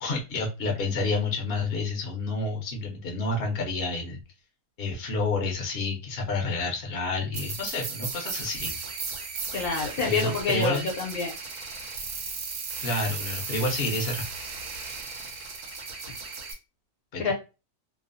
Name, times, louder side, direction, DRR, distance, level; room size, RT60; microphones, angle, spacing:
voice 1, 0.0-4.2 4.8-8.7 10.0-10.9 12.8-14.2 17.1-17.3, left 3 dB, 55° left, 0 dB, 0.7 m, -29 dB
sound 1, 7.3-16.5, right 4 dB, 80° right, 1.2 m, -36 dB
voice 2, 9.5-11.3 17.2-17.3, left 4 dB, 75° left, 0 dB, 1.1 m, -27 dB
3.0 x 2.0 x 2.5 m, 0.28 s
omnidirectional pair, 1.6 m